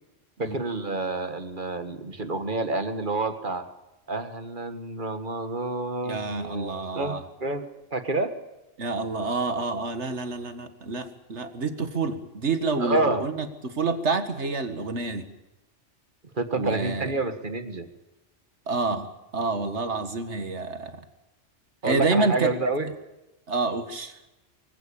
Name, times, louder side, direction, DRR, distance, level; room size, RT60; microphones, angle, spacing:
voice 1, 0.4-3.6 4.1-8.3 12.8-13.3 16.3-17.9 21.8-22.9, right 2 dB, 45° right, 9 dB, 1.8 m, -29 dB
voice 2, 6.0-7.2 8.8-15.3 16.6-17.1 18.7-21.0 21.8-22.5 23.5-24.1, right 3 dB, 70° right, 9 dB, 2.1 m, -28 dB
23.5 x 16.0 x 8.7 m, 1.0 s
omnidirectional pair, 1.2 m